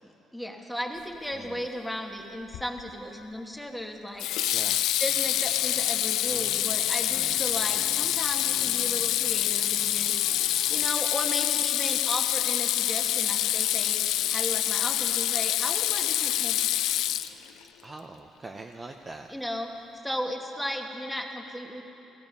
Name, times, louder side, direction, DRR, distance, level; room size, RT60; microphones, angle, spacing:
voice 1, 0.3-4.3 5.0-10.2 10.7-14.0 14.3-17.0 19.3-19.7 20.0-21.8, equal, ahead, 2 dB, 1.2 m, -35 dB
voice 2, 1.3-1.6 4.5-4.8 7.1-7.3 17.8-19.3, right 3 dB, 20° right, 3 dB, 0.6 m, -43 dB
Water tap faucet / Sink (filling or washing), 2.5-2.9 4.2-17.6, left 13 dB, 85° left, 0.4 m, -26 dB
sound 1, 5.0-10.8, left 2 dB, 25° left, 1.2 m, -50 dB
16.0 x 15.5 x 5.4 m, 2.9 s
cardioid pair, 135°, 0 cm